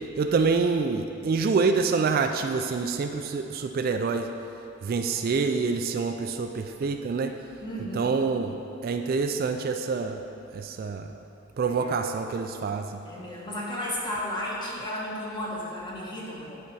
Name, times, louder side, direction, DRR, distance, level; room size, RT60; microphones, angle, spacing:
voice 1, 0.2-4.3 4.8-7.3 7.8-8.6 8.8-10.2 10.5-11.1 11.6-13.0, right 4 dB, 45° right, 6 dB, 0.3 m, -26 dB
voice 2, 7.6-8.2 11.6-12.0 13.0-16.6, left 1 dB, 25° left, -5 dB, 1.4 m, -34 dB
8.8 x 4.4 x 5.4 m, 2.9 s
head